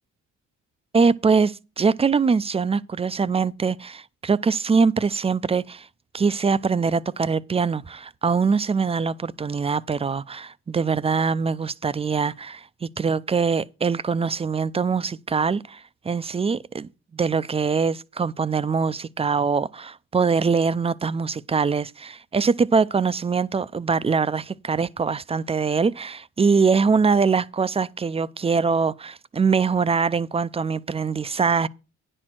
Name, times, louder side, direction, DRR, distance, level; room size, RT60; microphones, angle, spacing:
voice 1, 0.9-5.9 6.1-31.7, right 5 dB, 20° right, 0.4 m, -23 dB
9.9 x 4.4 x 7.5 m
cardioid pair, 90°, 30 cm